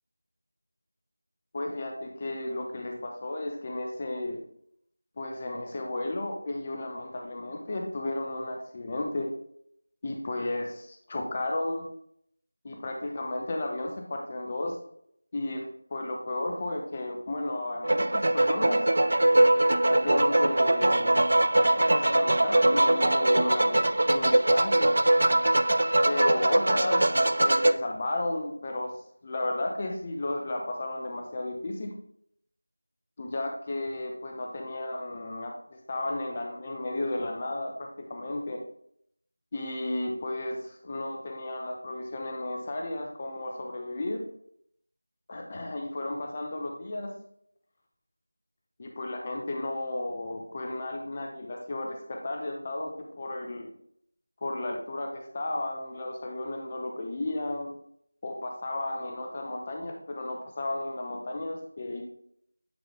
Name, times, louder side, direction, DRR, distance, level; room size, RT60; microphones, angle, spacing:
voice 1, 1.5-4.4 5.2-9.3 10.0-11.9 12.6-14.8 15.3-18.9 19.9-21.1 21.5-24.9 26.1-28.9 29.2-31.9 33.2-38.6 39.5-44.2 45.3-47.1 48.8-53.7 54.4-57.7 58.2-62.0, left 2 dB, 25° left, 2 dB, 0.6 m, -33 dB
sound 1, 17.8-27.7, right 1 dB, 55° right, 0.4 m, -22 dB
8.7 x 3.8 x 3.3 m, 0.69 s
figure-of-eight pair, 175°, 0 cm